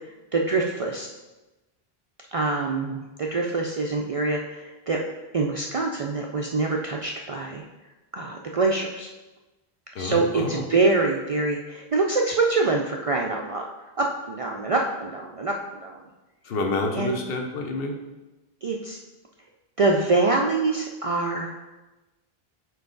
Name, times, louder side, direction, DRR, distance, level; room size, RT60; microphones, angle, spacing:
voice 1, 0.3-1.1 2.3-5.0 5.3-7.6 8.1-9.1 10.0-13.7 14.0-15.5 15.8-16.0 16.9-17.2 18.6-19.0 19.8-21.5, right 3 dB, 50° right, 0 dB, 0.4 m, -25 dB
voice 2, 9.9-10.6 16.4-18.0, left 2 dB, 70° left, 3 dB, 1.0 m, -28 dB
5.8 x 4.6 x 3.8 m, 1.1 s
omnidirectional pair, 1.0 m